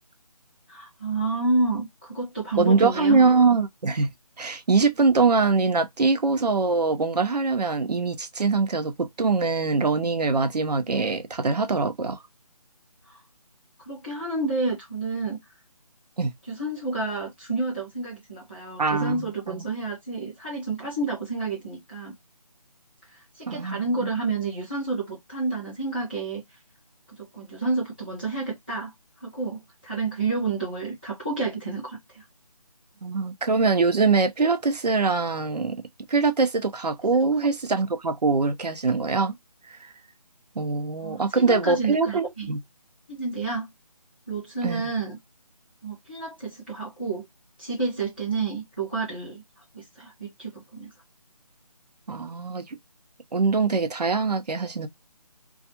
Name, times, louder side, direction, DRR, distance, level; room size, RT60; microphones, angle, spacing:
voice 1, 0.7-3.2 13.1-13.2 13.8-15.4 16.5-22.1 23.3-26.4 27.2-28.9 29.2-32.2 41.0-42.5 43.1-43.7 44.3-45.2 45.8-47.2 47.6-49.4 49.7-50.9, right 3 dB, 15° right, 0.6 m, -29 dB
voice 2, 2.6-4.1 4.4-12.2 16.2-16.3 18.8-19.6 23.5-24.1 33.0-35.8 36.1-39.3 39.7-39.9 40.6-42.6 44.6-44.8 52.1-52.8 53.3-54.9, right 4 dB, 90° right, 0.7 m, -23 dB
2.4 x 2.3 x 2.7 m
figure-of-eight pair, 175°, 20 cm